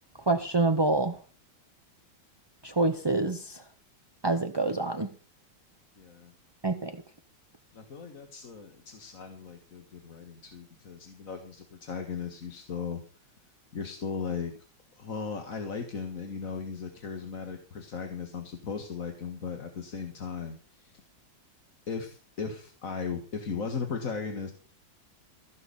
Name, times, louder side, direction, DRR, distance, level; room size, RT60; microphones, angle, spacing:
voice 1, 0.3-1.2 2.6-3.6 4.2-5.1 6.6-6.9, right 2 dB, 30° right, 7 dB, 0.5 m, -26 dB
voice 2, 6.0-6.3 7.7-13.0 13.7-14.5 15.0-21.0 21.9-24.5, left 5 dB, 45° left, 5 dB, 1.9 m, -37 dB
16.0 x 7.1 x 7.0 m, 0.40 s
omnidirectional pair, 2.1 m